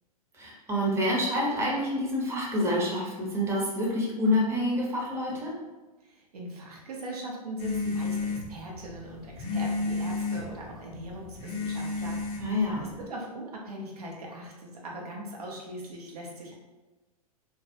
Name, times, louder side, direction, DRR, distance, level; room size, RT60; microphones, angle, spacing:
voice 1, 0.3-5.5 12.4-12.9, left 1 dB, 15° right, -4 dB, 0.7 m, -27 dB
voice 2, 6.0-16.5, right 1 dB, 80° right, -2 dB, 0.7 m, -40 dB
sound 1, 7.6-13.0, left 3 dB, 30° left, 0.5 m, -32 dB
2.2 x 2.0 x 2.8 m, 1.1 s
hypercardioid pair, 105°, 19 cm